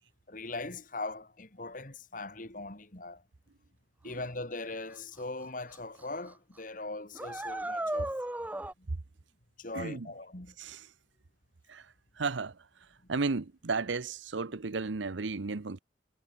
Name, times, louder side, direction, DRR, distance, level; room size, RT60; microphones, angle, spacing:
voice 1, 0.3-3.2 4.0-8.2 9.6-10.5, left 2 dB, 45° left, 2.5 m, -40 dB
sound 1, 5.2-5.3 5.7-6.0 6.3-6.4 7.1-8.7, right 1 dB, 10° right, 0.6 m, -35 dB
voice 2, 9.7-10.1 10.6-10.9 11.7-11.9 12.2-12.6 13.1-15.8, right 4 dB, 85° right, 0.9 m, -33 dB
head